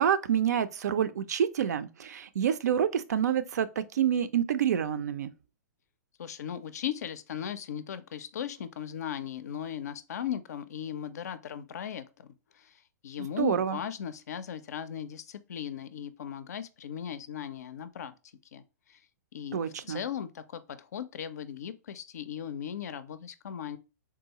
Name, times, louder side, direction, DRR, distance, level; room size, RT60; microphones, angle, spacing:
voice 1, 0.0-5.3 13.4-13.8 19.5-20.0, right 9 dB, 70° right, 0.4 m, -27 dB
voice 2, 6.2-12.7 13.0-18.1 18.5-18.6 18.9-19.0 19.3-23.8, left 9 dB, 65° left, 0.4 m, -37 dB
3.7 x 2.3 x 2.8 m
hypercardioid pair, 115°, 9 cm